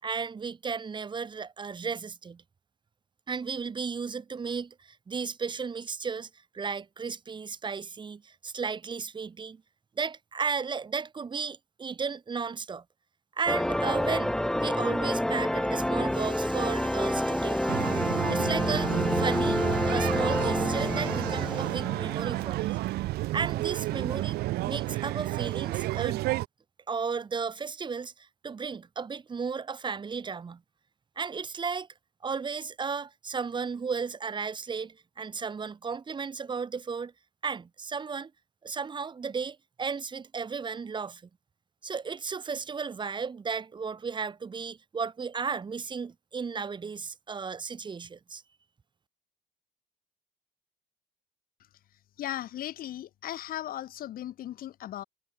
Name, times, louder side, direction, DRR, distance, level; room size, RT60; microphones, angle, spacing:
voice 1, 0.0-2.4 3.3-6.3 6.5-9.6 10.0-12.8 13.4-22.8 23.3-24.4 24.6-26.2 26.9-30.6 31.2-31.9 32.2-37.1 37.4-38.3 38.6-41.2 41.8-48.4, right 5 dB, 25° right, 1.0 m, -34 dB
sound 1, 13.5-22.7, left 1 dB, 5° left, 1.0 m, -28 dB
sound 2, 17.7-26.5, right 18 dB, 70° right, 1.2 m, -31 dB
voice 2, 52.2-55.0, left 12 dB, 60° left, 1.4 m, -37 dB
supercardioid pair, 70°, 17 cm